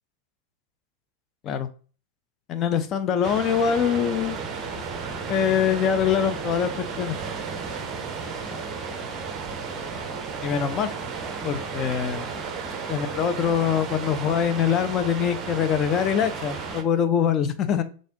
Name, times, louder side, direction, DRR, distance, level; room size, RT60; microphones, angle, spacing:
voice 1, 2.5-4.4 5.3-7.2 10.4-10.9 11.4-12.3 12.9-17.8, left 8 dB, 30° left, 10 dB, 0.4 m, -24 dB
sound 1, 3.2-16.8, right 5 dB, 30° right, 0.6 m, -33 dB
3.3 x 2.5 x 3.7 m, 0.39 s
figure-of-eight pair, 90°, 0 cm